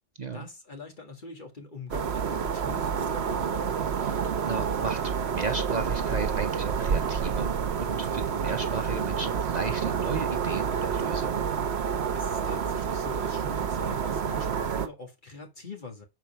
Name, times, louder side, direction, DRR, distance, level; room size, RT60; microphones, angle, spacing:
voice 1, 0.3-3.8 12.1-16.0, left 3 dB, 45° left, 2.0 m, -43 dB
sound 1, 1.9-14.9, right 7 dB, 70° right, 1.2 m, -29 dB
voice 2, 4.0-7.5 7.8-11.4, right 4 dB, 45° right, 0.7 m, -35 dB
7.1 x 4.5 x 5.7 m
omnidirectional pair, 1.2 m